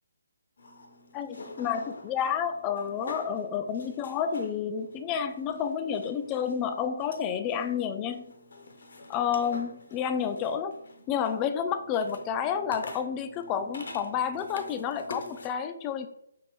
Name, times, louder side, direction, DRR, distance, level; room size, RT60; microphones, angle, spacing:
sound 1, 0.6-15.5, left 2 dB, 60° left, 0.6 m, -46 dB
voice 1, 1.1-8.3 9.1-10.8 11.1-16.1, left 7 dB, 20° left, 8 dB, 0.3 m, -30 dB
5.2 x 2.5 x 3.0 m, 0.77 s
figure-of-eight pair, 140°, 0 cm